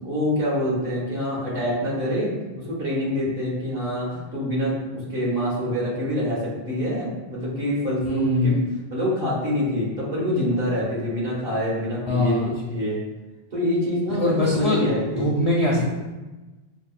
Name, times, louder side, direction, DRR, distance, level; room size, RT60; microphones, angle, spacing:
voice 1, 0.0-8.6 8.9-13.0 13.5-15.3, left 1 dB, 65° right, -6 dB, 1.5 m, -26 dB
voice 2, 8.0-8.6 12.1-12.6 14.2-14.8 15.2-15.9, left 1 dB, 45° left, -3 dB, 0.4 m, -22 dB
6.0 x 2.1 x 2.3 m, 1.1 s
omnidirectional pair, 1.0 m